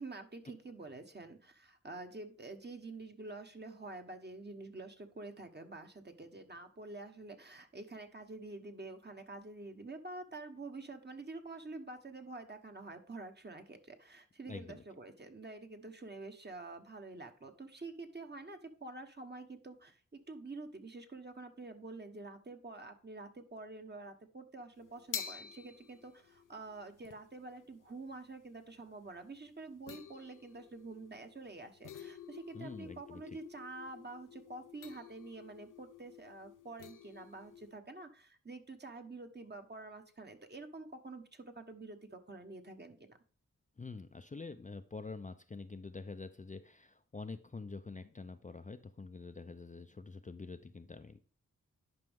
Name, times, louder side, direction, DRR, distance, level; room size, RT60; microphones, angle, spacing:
voice 1, 0.0-43.2, right 3 dB, 35° right, 5 dB, 1.2 m, -48 dB
voice 2, 14.5-14.8 32.5-33.4 43.8-51.2, left 4 dB, 25° left, 8 dB, 0.5 m, -46 dB
sound 1, 24.8-37.7, left 8 dB, 90° left, 0.6 m, -50 dB
10.5 x 5.2 x 3.6 m, 0.41 s
cardioid pair, 50°, 30 cm